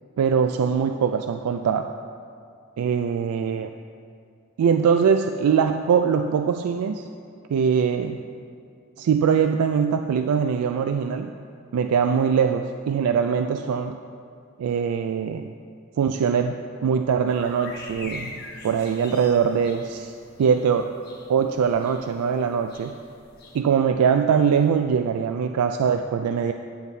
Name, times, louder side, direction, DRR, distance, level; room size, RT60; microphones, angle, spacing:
voice 1, 0.2-1.9 2.8-3.7 4.6-7.1 7.5-8.2 9.0-11.3 11.7-14.0 14.6-15.5 16.0-18.3 18.6-20.1 20.4-20.9 21.3-23.0 23.5-26.5, right 6 dB, 80° right, 7 dB, 0.3 m, -22 dB
sound 1, 17.3-23.6, left 2 dB, 45° left, 1.0 m, -43 dB
9.8 x 9.2 x 2.7 m, 2.3 s
head